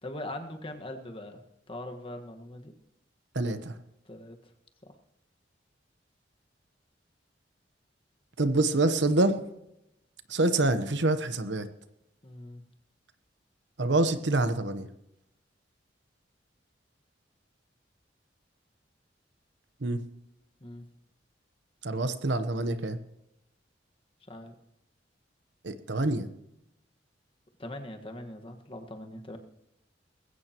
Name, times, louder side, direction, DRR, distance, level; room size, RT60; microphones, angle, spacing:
voice 1, 0.0-2.7 4.0-4.4 4.8-4.9 12.2-12.6 20.6-20.8 24.3-24.5 27.6-29.4, left 1 dB, 30° left, 4 dB, 1.6 m, -41 dB
voice 2, 3.3-3.7 8.4-9.4 10.3-11.7 13.8-14.9 19.8-20.0 21.8-23.0 25.6-26.3, right 2 dB, 75° right, 10 dB, 1.1 m, -26 dB
20.5 x 16.0 x 3.0 m, 0.85 s
head